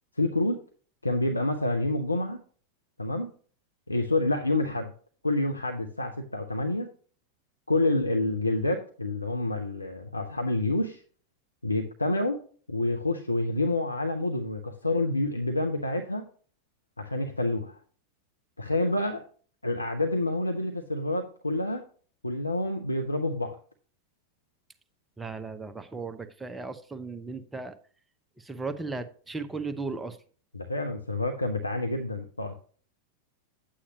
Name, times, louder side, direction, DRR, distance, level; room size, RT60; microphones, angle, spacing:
voice 1, 0.2-0.6 1.0-2.4 3.0-3.3 3.9-4.9 5.2-6.9 7.7-11.0 11.6-12.4 12.7-16.2 17.0-17.8 18.6-19.2 19.6-21.8 22.2-23.6 30.5-32.6, left 2 dB, 85° left, 5 dB, 0.8 m, -28 dB
voice 2, 25.2-27.8 28.4-30.2, right 3 dB, 10° right, 9 dB, 0.8 m, -36 dB
9.7 x 8.7 x 2.9 m, 0.43 s
figure-of-eight pair, 90°, 0 cm